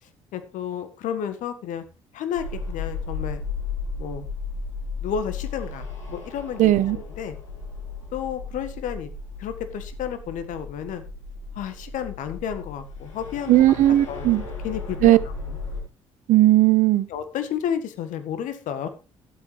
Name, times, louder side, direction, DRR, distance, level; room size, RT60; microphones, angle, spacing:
voice 1, 0.0-1.8 2.1-3.4 4.0-4.3 5.0-7.4 8.1-9.1 9.4-11.0 11.5-13.5 14.1-14.3 14.6-15.2 15.5-15.6 17.1-18.9, left 8 dB, 55° left, 1.6 m, -31 dB
sound 1, 2.3-15.8, left 4 dB, 80° left, 3.2 m, -35 dB
voice 2, 6.6-7.0 13.5-14.4 15.0-15.2 16.3-17.1, right 15 dB, 55° right, 0.8 m, -16 dB
13.0 x 12.5 x 3.3 m
figure-of-eight pair, 45°, 16 cm